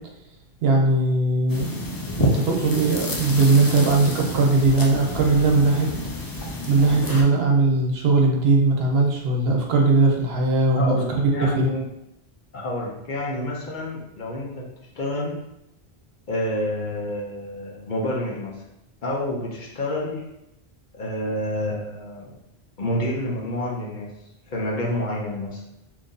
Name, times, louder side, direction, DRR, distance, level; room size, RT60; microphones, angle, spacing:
voice 1, 0.6-1.8 2.2-5.9 6.7-11.2 11.5-11.7, right 3 dB, 75° right, 0 dB, 1.0 m, -19 dB
sound 1, 1.5-7.2, left 2 dB, 35° left, 0.3 m, -29 dB
voice 2, 10.7-11.8 12.5-14.7 15.0-15.4 16.3-18.6 19.0-20.2 20.9-22.3 22.8-24.1 24.5-25.6, left 1 dB, 50° left, -3 dB, 0.8 m, -28 dB
3.0 x 2.6 x 3.7 m, 0.85 s
omnidirectional pair, 1.0 m